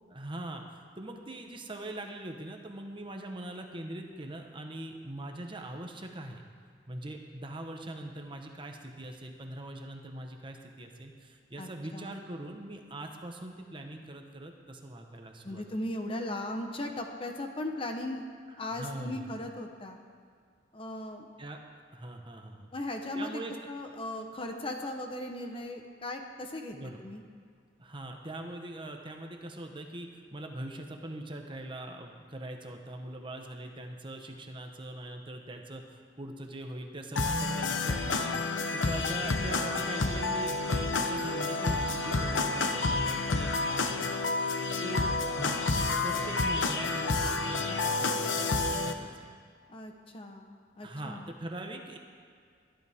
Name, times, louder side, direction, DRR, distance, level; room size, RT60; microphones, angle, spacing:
voice 1, 0.1-0.6 1.0-6.5 6.9-15.6 18.6-19.3 21.4-21.6 21.9-22.7 23.1-23.5 26.7-27.0 27.8-38.4 38.7-44.1 44.8-49.3 50.8-52.0, right 1 dB, 25° right, 3 dB, 1.1 m, -42 dB
voice 2, 11.6-12.2 15.4-18.2 18.6-20.0 20.7-21.2 22.7-23.4 23.7-27.2 49.7-51.3, left 1 dB, 30° left, 4 dB, 1.0 m, -37 dB
sound 1, 37.2-48.9, left 3 dB, 80° left, 0.9 m, -29 dB
22.0 x 11.0 x 3.6 m, 2.1 s
head